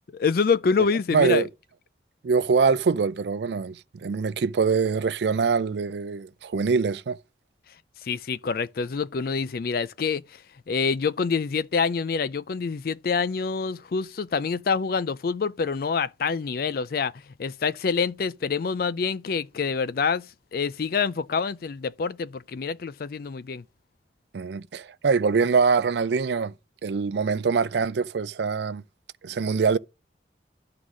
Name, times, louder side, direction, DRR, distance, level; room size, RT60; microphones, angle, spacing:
voice 1, 0.1-1.5 8.0-20.3 20.5-23.6, left 5 dB, 55° left, 0.4 m, -26 dB
voice 2, 1.1-1.5 2.2-7.2 24.3-26.5 26.8-28.8 29.2-29.8, right 5 dB, 70° right, 0.4 m, -24 dB
11.5 x 3.9 x 6.1 m
head